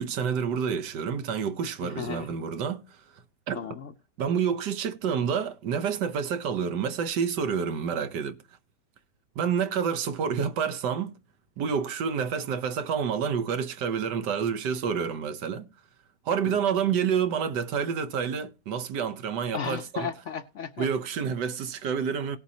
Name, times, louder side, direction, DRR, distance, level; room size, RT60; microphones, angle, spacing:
voice 1, 0.0-2.8 3.5-3.6 4.2-8.4 9.4-11.1 11.6-15.7 16.2-20.1 20.8-22.4, right 7 dB, 80° right, 1.5 m, -28 dB
voice 2, 1.8-2.3 3.5-3.9 16.5-16.6 19.5-20.9, left 7 dB, 65° left, 0.8 m, -34 dB
18.5 x 7.4 x 2.8 m
omnidirectional pair, 1.8 m